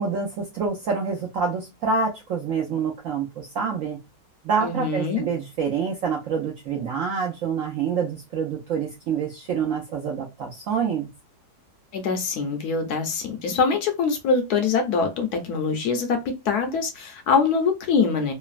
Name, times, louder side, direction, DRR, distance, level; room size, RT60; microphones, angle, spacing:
voice 1, 0.0-4.0 4.4-11.1, right 6 dB, 75° right, 0.7 m, -27 dB
voice 2, 4.6-5.3 11.9-18.3, left 5 dB, 70° left, 1.0 m, -24 dB
3.1 x 2.0 x 2.4 m
omnidirectional pair, 1.9 m